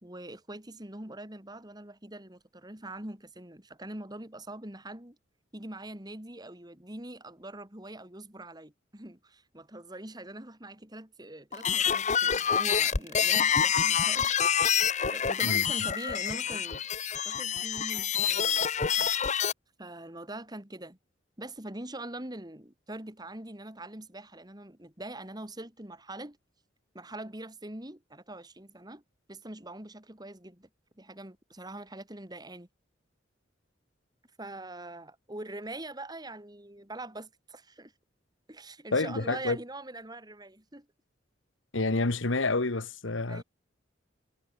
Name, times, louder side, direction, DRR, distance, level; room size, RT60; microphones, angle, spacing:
voice 1, 0.0-5.2 5.5-14.3 15.1-16.8 17.2-19.1 19.8-21.0 21.4-26.4 26.9-29.0 29.3-30.7 31.0-32.7 34.4-37.9 38.5-40.9 43.3-43.4, right 1 dB, 20° right, 2.9 m, -43 dB
sound 1, 11.5-19.5, left 8 dB, 40° left, 0.8 m, -27 dB
voice 2, 38.9-39.6 41.7-43.4, left 3 dB, 85° left, 1.5 m, -28 dB
head